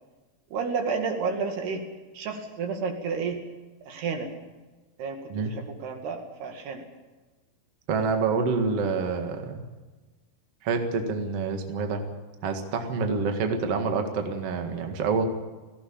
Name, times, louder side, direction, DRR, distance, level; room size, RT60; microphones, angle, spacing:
voice 1, 0.5-1.9 2.1-3.4 3.9-4.3 5.0-6.8, right 5 dB, 70° right, 4 dB, 4.1 m, -31 dB
voice 2, 7.9-9.6 10.6-12.0 12.4-15.2, right 4 dB, 50° right, 4 dB, 2.1 m, -27 dB
18.5 x 16.0 x 8.7 m, 1.2 s
omnidirectional pair, 5.0 m